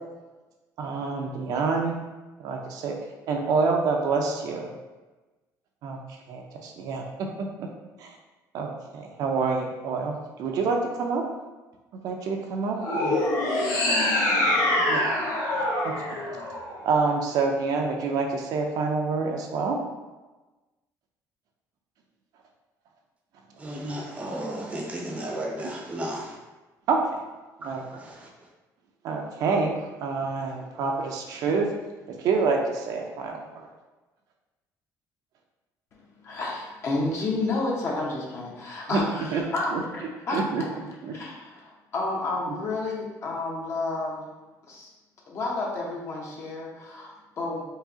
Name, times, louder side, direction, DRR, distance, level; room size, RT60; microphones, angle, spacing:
voice 1, 0.8-1.9 2.4-2.9 3.3-4.7 5.8-6.0 6.3-7.3 7.6-7.7 8.0-8.1 8.5-10.1 10.4-11.2 12.0-13.2 14.9-15.1 15.8-16.2 16.8-19.8 26.9-27.0 27.6-28.0 29.0-31.7 32.1-33.7 38.9-39.0 39.3-39.4 39.7-39.8 40.3-40.6 41.0-41.1 42.5-42.6, right 4 dB, 65° right, 1 dB, 0.6 m, -27 dB
sound 1, 12.8-17.1, left 1 dB, 75° left, 1.2 m, -25 dB
voice 2, 23.6-26.4 27.9-28.3, right 1 dB, 20° right, -1 dB, 0.7 m, -34 dB
voice 3, 36.2-40.8 41.1-44.2 44.7-44.9 45.3-47.6, left 2 dB, 40° left, -3 dB, 0.9 m, -31 dB
4.7 x 2.8 x 2.8 m, 1.2 s
cardioid pair, 155°, 7 cm